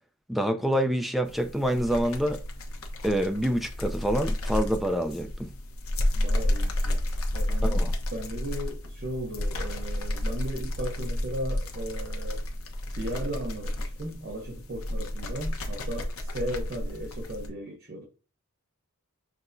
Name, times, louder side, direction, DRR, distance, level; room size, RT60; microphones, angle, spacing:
voice 1, 0.3-2.4 3.0-5.5 7.7-7.9, equal, ahead, 0.5 m, -26 dB
sound 1, 1.2-17.5, left 1 dB, 80° left, 1.0 m, -31 dB
voice 2, 6.1-7.1 7.3-7.8 8.1-12.4 13.0-18.1, right 1 dB, 50° right, 0.9 m, -36 dB
6.1 x 3.3 x 2.6 m
head